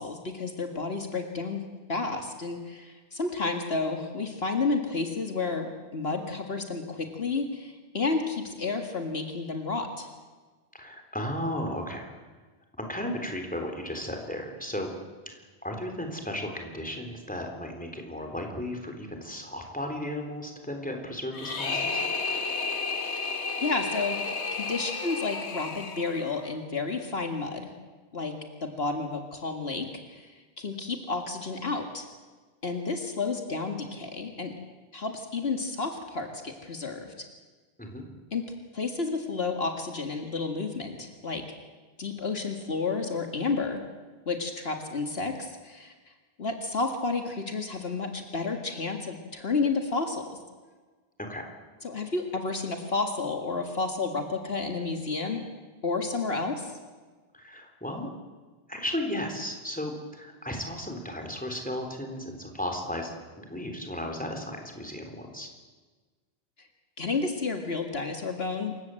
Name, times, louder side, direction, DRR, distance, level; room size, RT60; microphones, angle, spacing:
voice 1, 0.0-1.6 1.9-10.1 23.6-27.7 28.1-28.3 28.6-30.3 30.6-32.1 32.6-34.5 34.9-37.3 38.3-38.4 38.7-41.4 42.0-43.8 44.3-45.9 46.4-50.4 51.8-55.4 55.8-56.7 67.0-68.7, left 3 dB, 65° left, 4 dB, 2.2 m, -31 dB
voice 2, 10.7-12.1 12.8-14.9 15.3-15.4 15.6-22.0 37.8-38.0 51.2-51.5 57.3-58.1 58.7-65.5, left 1 dB, 5° left, 2 dB, 3.7 m, -35 dB
sound 1, 21.3-26.5, left 4 dB, 90° left, 1.8 m, -32 dB
27.5 x 16.5 x 7.7 m, 1.4 s
omnidirectional pair, 1.1 m